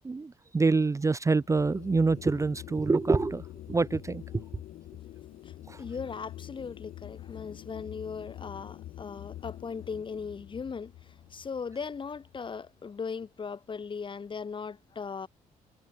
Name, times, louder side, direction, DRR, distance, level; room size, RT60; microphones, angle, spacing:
voice 1, 0.0-3.4 3.7-4.2 5.7-5.8, right 3 dB, 20° right, 0.6 m, -26 dB
sound 1, 1.3-12.7, left 13 dB, 80° left, 1.3 m, -46 dB
voice 2, 5.4-15.3, left 5 dB, 35° left, 1.0 m, -38 dB
cardioid pair, 90°, 15 cm